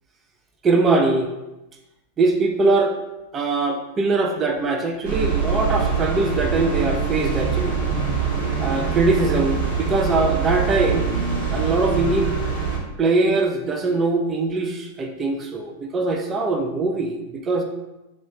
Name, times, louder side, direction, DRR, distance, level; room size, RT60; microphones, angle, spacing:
voice 1, 0.6-1.3 2.2-2.9 3.3-7.7 8.6-11.1 11.5-12.4 13.0-17.6, right 3 dB, 25° right, 2 dB, 0.4 m, -22 dB
sound 1, 5.0-12.8, right 6 dB, 65° right, 0.9 m, -24 dB
3.0 x 2.3 x 3.1 m, 1.0 s
hypercardioid pair, 95°, 0 cm